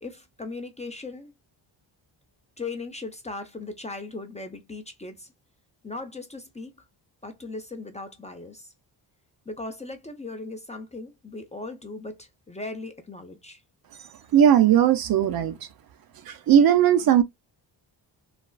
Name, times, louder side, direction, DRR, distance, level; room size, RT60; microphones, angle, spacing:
voice 1, 0.0-1.3 2.6-5.3 5.8-6.7 7.2-8.7 9.5-13.6, left 3 dB, 15° left, 0.4 m, -38 dB
voice 2, 14.3-15.6 16.3-17.2, right 9 dB, 50° right, 0.5 m, -18 dB
3.3 x 2.3 x 2.2 m
cardioid pair, 100°, 46 cm